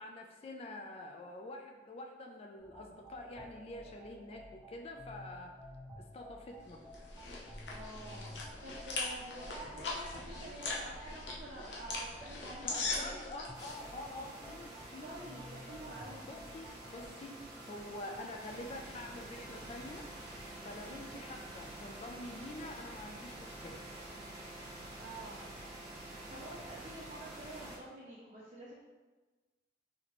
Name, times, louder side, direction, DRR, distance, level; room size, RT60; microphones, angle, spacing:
voice 1, 0.0-5.5 6.0-6.8 12.6-15.1 16.2-17.4 17.7-20.1 20.6-23.8, left 1 dB, 35° left, 2 dB, 0.3 m, -47 dB
sound 1, 2.6-17.1, equal, ahead, 1.1 m, -53 dB
sound 2, 6.7-13.8, left 3 dB, 80° left, 0.7 m, -41 dB
voice 2, 7.4-13.2 15.0-16.3 25.0-25.5 26.3-28.8, right 2 dB, 40° right, -8 dB, 0.6 m, -48 dB
sound 3, 13.5-27.8, right 1 dB, 20° right, 1.2 m, -48 dB
4.1 x 2.8 x 3.0 m, 1.2 s
head